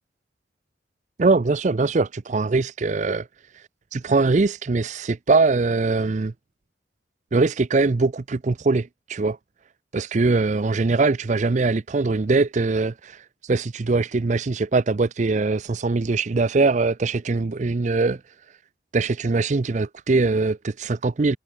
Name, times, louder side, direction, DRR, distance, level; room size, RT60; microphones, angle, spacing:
voice 1, 1.2-3.3 3.5-6.3 7.3-9.4 9.9-18.3 18.9-21.4, right 3 dB, 40° right, 0.5 m, -22 dB
head